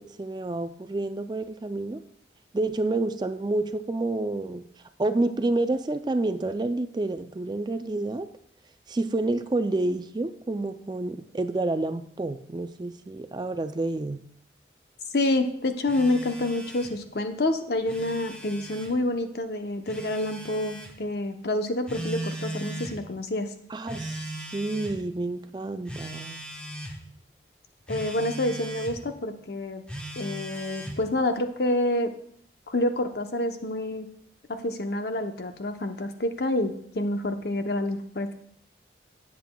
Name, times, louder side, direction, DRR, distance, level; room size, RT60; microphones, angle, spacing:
voice 1, 0.0-2.0 2.5-4.6 5.0-8.3 8.9-14.2 23.7-24.2 24.5-26.4, right 2 dB, 25° right, 9 dB, 0.3 m, -29 dB
voice 2, 15.1-23.5 27.9-29.8 30.2-32.1 32.7-34.1 34.5-38.3, left 1 dB, 60° left, 6 dB, 0.8 m, -28 dB
Telephone, 15.9-17.0 17.7-18.9 19.9-20.9 21.9-23.0 23.9-25.0 25.9-27.0 27.9-29.0 29.9-31.0, right 1 dB, 5° left, 1.1 m, -38 dB
17.5 x 7.6 x 2.3 m, 0.66 s
head